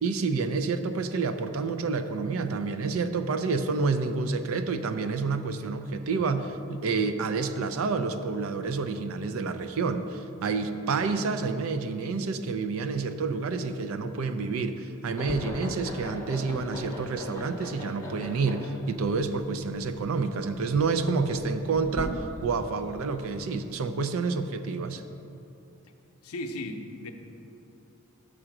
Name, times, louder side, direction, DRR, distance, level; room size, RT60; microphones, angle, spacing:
voice 1, 0.0-25.0, right 4 dB, 70° right, 9 dB, 0.4 m, -29 dB
sound 1, 15.1-23.5, left 1 dB, 15° left, 0.7 m, -39 dB
voice 2, 26.2-27.1, left 1 dB, 85° left, 4 dB, 0.6 m, -36 dB
6.5 x 4.9 x 5.9 m, 2.7 s
head